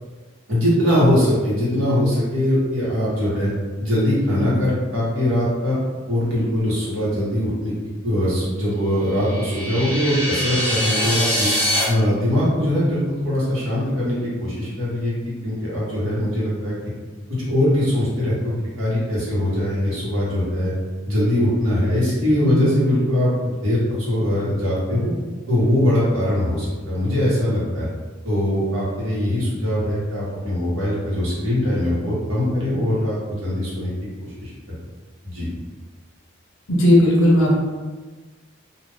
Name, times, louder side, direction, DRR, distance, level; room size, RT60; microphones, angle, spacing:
voice 1, 0.5-3.5 3.8-5.8 6.1-7.7 8.0-11.5 11.8-16.8 17.4-20.7 21.1-23.8 24.1-25.1 25.5-27.8 28.2-33.9 34.2-34.5 35.2-35.5, left 1 dB, 90° right, -8 dB, 1.3 m, -21 dB
sound 1, 9.1-11.8, equal, 10° right, 1.0 m, -23 dB
voice 2, 36.7-37.6, left 1 dB, 85° left, -2 dB, 0.7 m, -16 dB
2.5 x 2.4 x 3.4 m, 1.4 s
head